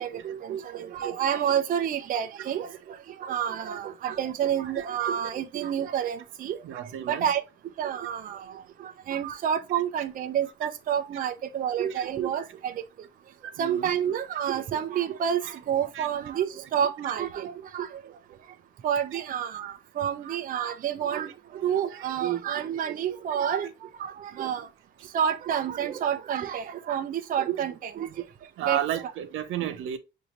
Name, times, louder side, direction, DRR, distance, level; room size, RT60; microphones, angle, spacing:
voice 1, 0.0-2.7 3.2-6.6 7.1-7.4 7.8-8.4 8.8-12.7 13.6-16.5 16.7-17.9 18.8-21.3 21.6-23.7 24.0-24.7 25.1-28.1 28.7-28.8, right 9 dB, 45° right, 0.5 m, -29 dB
voice 2, 6.6-7.2 11.9-12.0 13.4-13.9 15.9-16.1 24.3-24.4 28.6-30.0, right 10 dB, 90° right, 0.7 m, -32 dB
6.0 x 2.6 x 3.0 m
cardioid pair, 170°, 20 cm